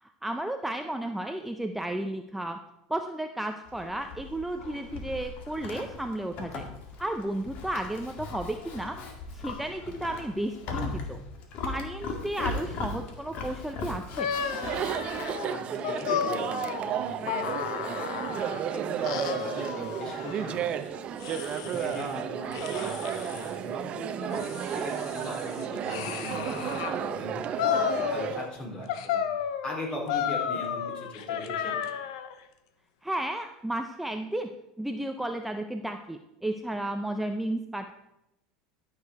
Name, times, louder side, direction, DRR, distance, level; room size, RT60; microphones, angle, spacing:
voice 1, 0.0-2.6 2.9-6.7 7.0-9.0 9.3-11.2 11.6-14.4 33.0-34.5 34.8-37.9, right 1 dB, 5° right, 5 dB, 0.6 m, -33 dB
Livestock farm animals working animals, 3.7-15.3, left 3 dB, 55° left, 2.0 m, -38 dB
sound 1, 14.2-18.6 19.0-20.6 21.2-22.1 22.5-23.5 24.1-27.0 27.6-28.6 28.9-32.3, left 9 dB, 80° left, 0.8 m, -33 dB
Chatter, 14.3-28.5, right 9 dB, 40° right, 0.7 m, -33 dB
voice 2, 15.5-20.9 21.2-21.3 21.6-29.2 29.6-31.8, left 1 dB, 30° left, -1 dB, 4.5 m, -40 dB
12.0 x 6.6 x 4.7 m, 0.89 s
supercardioid pair, 105°, 3 cm